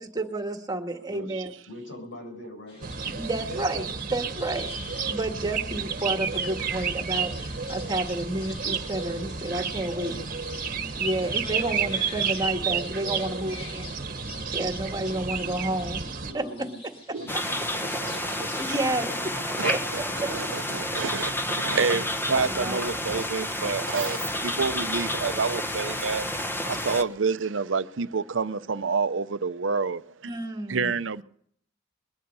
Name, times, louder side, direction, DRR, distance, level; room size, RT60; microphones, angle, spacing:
voice 1, 0.0-1.5 3.2-4.7 5.1-10.2 11.0-13.8 14.1-14.2 14.5-16.0 16.3-16.4 18.6-19.1 19.7-19.8 22.3-23.0 30.3-30.9, right 2 dB, 20° right, 1.7 m, -30 dB
voice 2, 1.7-3.6 4.2-4.3 6.2-6.3 9.8-10.4 10.7-11.2 13.1-13.6 16.2-16.8 17.2-18.4 18.9-19.9, left 1 dB, 70° left, 7.7 m, -44 dB
sound 1, 2.7-19.0, left 1 dB, 30° left, 2.4 m, -45 dB
sound 2, 2.8-16.3, right 6 dB, 45° right, 1.3 m, -31 dB
sound 3, 17.3-27.0, left 1 dB, 10° left, 1.1 m, -30 dB
voice 3, 18.0-18.3 19.6-20.0 20.3-26.3 26.7-30.4 30.7-31.2, right 5 dB, 70° right, 0.7 m, -28 dB
22.0 x 11.5 x 5.5 m
head